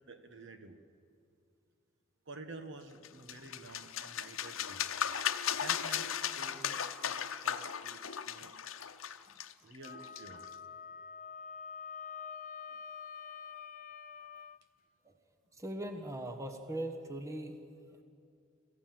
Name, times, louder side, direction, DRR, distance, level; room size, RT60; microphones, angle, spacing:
voice 1, 0.1-0.7 2.2-4.9 5.6-8.0 8.2-8.5 9.6-10.4, right 3 dB, 65° right, 7 dB, 1.5 m, -50 dB
sound 1, 3.0-10.5, left 8 dB, 85° left, 0.8 m, -37 dB
Wind instrument woodwind instrument, 9.8-14.6, left 6 dB, 40° left, 0.6 m, -46 dB
voice 2, 15.6-17.5, right 1 dB, 15° right, 5 dB, 1.4 m, -39 dB
27.0 x 15.0 x 7.7 m, 2.4 s
head